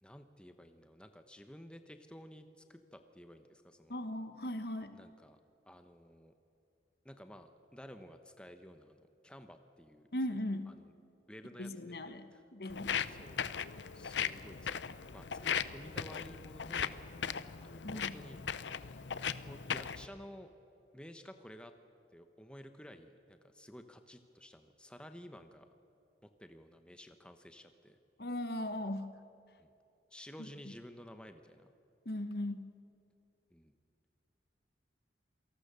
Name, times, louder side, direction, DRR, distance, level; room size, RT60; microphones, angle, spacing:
voice 1, 0.0-4.0 4.9-5.4 5.7-6.3 7.0-10.1 10.7-10.9 11.3-12.0 12.3-12.4 13.1-13.5 13.9-14.8 15.1-17.0 17.6-18.4 19.4-20.5 20.9-21.7 22.1-25.7 26.2-28.0 29.6-29.7 30.1-31.7 33.5-33.7, equal, 5° left, 8 dB, 0.9 m, -53 dB
voice 2, 3.9-5.0 10.1-10.8 11.6-13.0 17.8-18.2 28.2-29.2 32.0-32.7, left 1 dB, 55° left, 10 dB, 1.2 m, -38 dB
Walk footsteps, 12.7-20.1, left 7 dB, 80° left, 0.7 m, -38 dB
27.5 x 18.5 x 6.8 m, 2.7 s
head